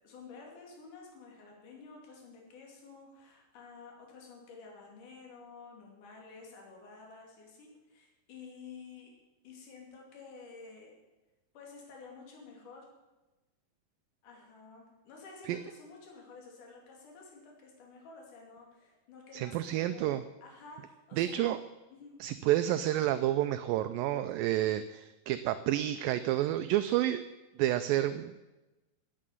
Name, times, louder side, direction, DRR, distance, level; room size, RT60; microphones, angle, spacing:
voice 1, 0.0-9.1 9.4-11.0 11.5-12.9 14.2-21.5 21.9-22.1 22.6-22.8, left 4 dB, 55° left, -1 dB, 4.0 m, -51 dB
voice 2, 19.3-20.2 21.2-21.6 22.2-27.2 27.6-28.4, right 13 dB, 80° right, 11 dB, 2.1 m, -29 dB
11.5 x 8.6 x 9.3 m, 1.1 s
omnidirectional pair, 4.4 m